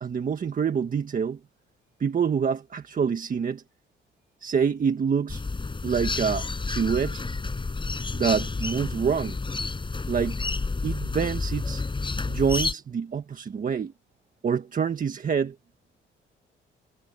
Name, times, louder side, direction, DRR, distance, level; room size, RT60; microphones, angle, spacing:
voice 1, 0.0-1.4 2.0-3.6 4.4-5.4 5.8-7.2 8.1-9.4 10.1-10.4 10.8-11.8 12.3-13.9 14.4-15.5, right 6 dB, 45° right, 1.5 m, -26 dB
sound 1, 5.3-12.7, left 3 dB, 25° left, 5.0 m, -30 dB
cardioid pair, 90°, 20 cm